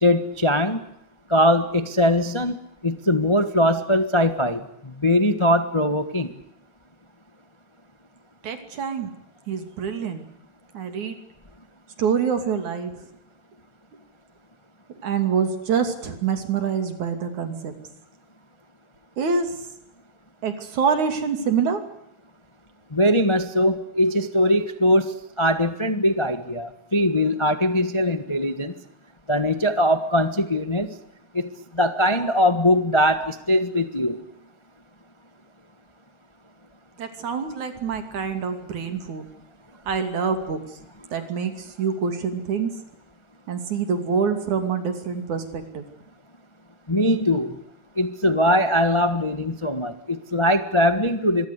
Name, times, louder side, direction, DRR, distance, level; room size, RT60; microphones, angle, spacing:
voice 1, 0.0-0.8 1.3-2.6 2.8-6.3 22.9-28.7 29.3-31.0 31.3-34.2 46.9-47.6 48.0-51.5, left 1 dB, 50° left, 10 dB, 0.3 m, -21 dB
voice 2, 8.4-9.1 9.5-10.2 10.7-11.2 12.0-13.0 15.0-17.7 19.2-19.6 20.4-21.8 37.0-39.2 39.9-40.6 41.1-42.7 43.5-45.8, right 6 dB, 80° right, 8 dB, 4.1 m, -26 dB
25.5 x 22.5 x 8.3 m, 0.78 s
omnidirectional pair, 3.3 m